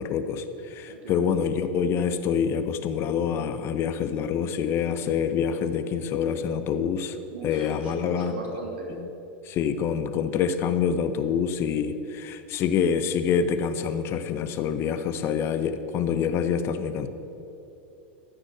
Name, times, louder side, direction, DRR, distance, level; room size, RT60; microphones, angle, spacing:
voice 1, 0.0-7.2 7.4-8.3 8.9-9.1 9.5-17.1, left 7 dB, 45° left, 10 dB, 1.0 m, -26 dB
voice 2, 0.9-1.3 7.3-8.9, right 2 dB, 75° right, -1 dB, 2.6 m, -38 dB
14.5 x 6.3 x 8.0 m, 2.8 s
hypercardioid pair, 95°, 6 cm